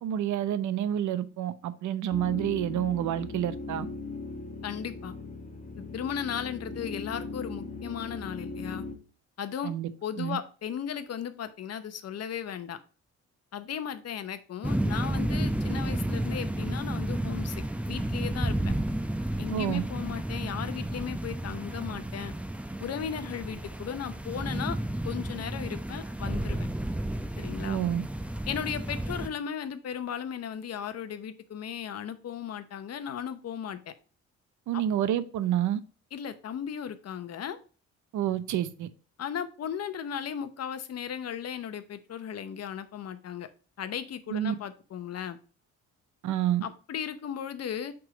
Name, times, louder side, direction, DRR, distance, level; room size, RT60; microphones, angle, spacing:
voice 1, 0.0-3.9 9.6-9.9 10.2-10.4 19.5-19.8 27.6-28.0 34.7-35.8 38.1-38.9 44.3-44.5 46.2-46.6, right 11 dB, 75° right, 0.7 m, -28 dB
sound 1, 2.1-9.0, left 3 dB, 25° left, 1.2 m, -39 dB
voice 2, 4.6-5.2 5.8-8.9 9.4-9.7 10.0-12.8 13.5-18.7 19.4-22.3 22.8-24.8 25.0-26.7 27.4-27.8 28.5-33.9 36.1-37.6 39.2-43.5 43.8-45.4 46.6-47.9, left 8 dB, 55° left, 0.9 m, -36 dB
sound 2, 14.6-29.3, right 1 dB, 5° right, 0.7 m, -32 dB
6.0 x 3.7 x 4.9 m
cardioid pair, 90°, 30 cm